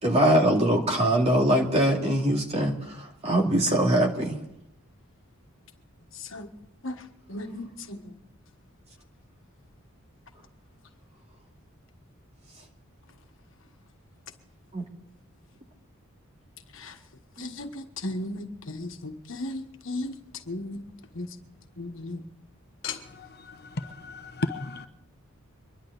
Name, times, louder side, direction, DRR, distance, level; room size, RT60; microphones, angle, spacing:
voice 1, 0.0-4.4 14.7-14.8 17.4-17.5, right 1 dB, 30° right, 1 dB, 2.4 m, -23 dB
voice 2, 7.3-8.0 16.8-16.9 17.4-20.1 20.5-20.8 21.1-21.3 21.8-22.2 22.8-23.0, left 2 dB, 65° left, 5 dB, 1.5 m, -35 dB
voice 3, 23.2-24.9, left 2 dB, 50° left, 8 dB, 0.9 m, -34 dB
25.0 x 11.5 x 4.0 m, 0.76 s
head